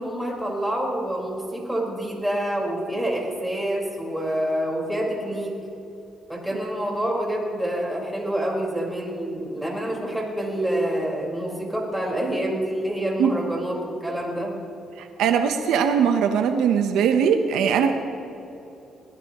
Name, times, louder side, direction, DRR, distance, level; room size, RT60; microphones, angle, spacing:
voice 1, 0.0-5.5 6.3-14.6, right 1 dB, 5° right, -2 dB, 4.8 m, -27 dB
voice 2, 15.0-17.9, right 7 dB, 85° right, 6 dB, 1.0 m, -20 dB
23.5 x 18.0 x 3.1 m, 2.8 s
cardioid pair, 90°, 0 cm